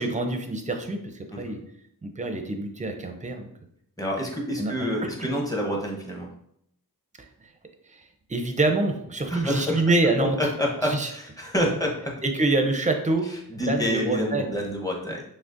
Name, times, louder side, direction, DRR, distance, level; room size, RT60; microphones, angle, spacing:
voice 1, 0.0-1.6 2.0-3.5 4.6-4.9 5.2-5.3 7.9-8.0 8.3-10.4 10.8-11.1 12.2-14.5, right 2 dB, 20° right, 5 dB, 0.5 m, -26 dB
voice 2, 4.0-6.3 9.3-9.8 10.4-12.2 13.5-15.2, equal, 10° left, -1 dB, 0.9 m, -28 dB
6.0 x 2.1 x 2.5 m, 0.73 s
wide cardioid pair, 80°, 36 cm